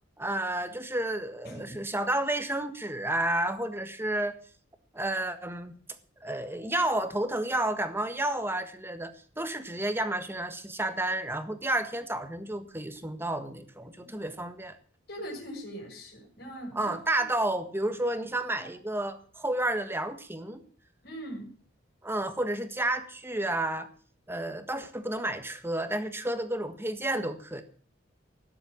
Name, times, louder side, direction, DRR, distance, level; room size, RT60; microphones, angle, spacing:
voice 1, 0.2-4.4 4.9-5.7 6.2-14.7 16.7-20.6 22.0-23.9 24.3-27.6, right 1 dB, 15° right, 9 dB, 1.6 m, -31 dB
voice 2, 1.4-1.8 14.0-14.1 15.1-16.9 21.0-21.5, equal, 60° left, 1 dB, 6.3 m, -41 dB
18.0 x 7.8 x 7.3 m, 0.44 s
head